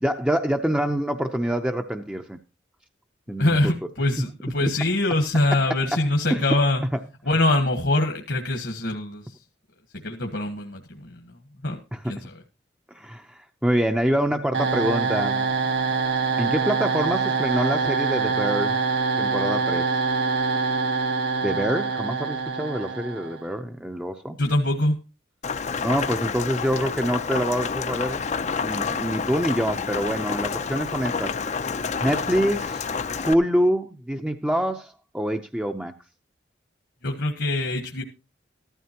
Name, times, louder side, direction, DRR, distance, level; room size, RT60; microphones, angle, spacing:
voice 1, 0.0-2.4 3.3-3.7 4.6-4.7 5.7-6.0 6.3-6.6 6.9-7.0 11.9-12.1 12.9-15.5 16.4-18.8 19.2-19.9 21.4-24.4 25.8-28.3 28.6-31.4 32.0-32.9 33.1-35.9, equal, 5° right, 0.6 m, -26 dB
voice 2, 3.4-6.8 7.2-9.3 10.0-11.3 11.6-11.8 12.1-12.3 24.4-24.9 37.0-38.0, left 2 dB, 65° left, 1.4 m, -24 dB
sound 1, 14.5-23.5, right 4 dB, 80° right, 1.4 m, -25 dB
Rain, 25.4-33.3, left 5 dB, 40° left, 0.5 m, -29 dB
14.5 x 12.5 x 2.9 m
head